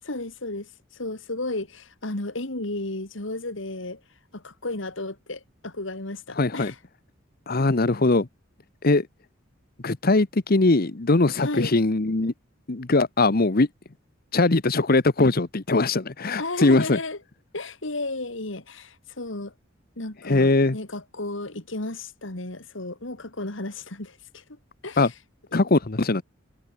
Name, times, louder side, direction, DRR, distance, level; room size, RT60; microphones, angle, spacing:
voice 1, 0.0-4.0 4.3-6.8 11.4-11.7 16.4-17.2 17.5-19.5 20.0-24.4 24.8-25.2, left 2 dB, 70° left, 2.7 m, -33 dB
voice 2, 6.4-6.7 7.5-8.3 8.8-9.1 9.8-12.3 12.7-13.7 14.3-17.0 20.2-20.8 25.0-25.1 25.5-26.2, left 2 dB, 50° left, 1.0 m, -21 dB
head